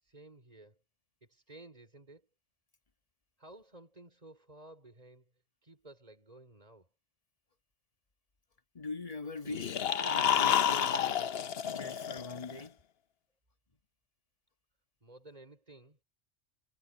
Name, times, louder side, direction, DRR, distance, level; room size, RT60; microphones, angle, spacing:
voice 1, 0.0-0.8 1.2-2.3 3.4-5.3 5.6-6.9 15.0-16.0, right 2 dB, 35° right, 5.0 m, -54 dB
voice 2, 8.7-12.8, left 3 dB, 30° left, 1.6 m, -43 dB
sound 1, 9.5-12.6, left 9 dB, 60° left, 1.0 m, -30 dB
omnidirectional pair, 1.2 m